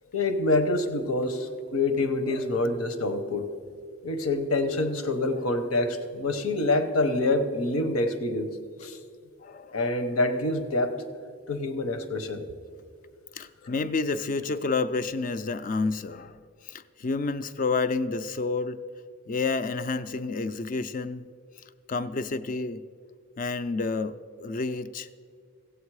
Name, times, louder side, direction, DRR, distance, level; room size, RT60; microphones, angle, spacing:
voice 1, 0.1-3.5 4.0-8.5 8.8-9.0 9.7-11.0 11.5-12.4, left 2 dB, 90° left, 9 dB, 0.9 m, -26 dB
voice 2, 9.4-9.8 13.3-16.4 16.6-18.8 19.3-21.2 21.9-22.8 23.4-25.1, left 3 dB, 40° left, 13 dB, 0.4 m, -29 dB
15.5 x 8.1 x 4.8 m, 2.1 s
head